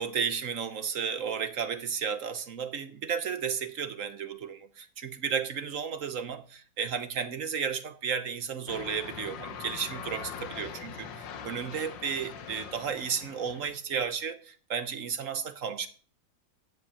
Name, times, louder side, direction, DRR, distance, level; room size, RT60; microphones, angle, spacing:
voice 1, 0.0-15.9, right 7 dB, 55° right, 1.0 m, -33 dB
sound 1, 8.7-13.8, left 7 dB, 75° left, 1.8 m, -42 dB
14.0 x 5.2 x 8.6 m
omnidirectional pair, 2.0 m